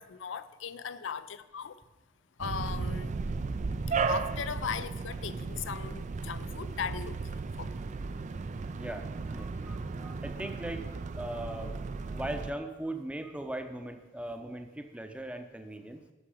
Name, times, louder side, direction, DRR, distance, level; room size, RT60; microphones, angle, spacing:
voice 1, 0.0-1.8 2.4-3.1 4.1-7.7, left 7 dB, 75° left, 15 dB, 0.5 m, -38 dB
sound 1, 2.4-12.5, right 4 dB, 35° right, 0.3 m, -35 dB
voice 2, 8.8-10.9 11.2-11.7 12.1-16.0, right 1 dB, 5° right, 6 dB, 0.7 m, -39 dB
11.5 x 6.0 x 4.9 m, 1.1 s
head